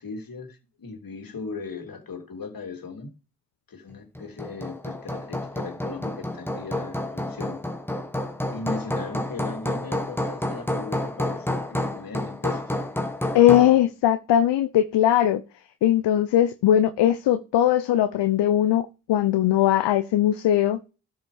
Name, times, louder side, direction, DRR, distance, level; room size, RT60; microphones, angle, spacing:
voice 1, 0.0-3.1 3.7-7.6 8.5-12.8, left 4 dB, 50° left, 3.2 m, -38 dB
Hammer, 4.1-13.8, left 1 dB, 5° left, 1.9 m, -30 dB
voice 2, 13.3-15.4 15.8-20.8, left 11 dB, 70° left, 0.8 m, -20 dB
13.0 x 5.7 x 5.0 m
hypercardioid pair, 40°, 43 cm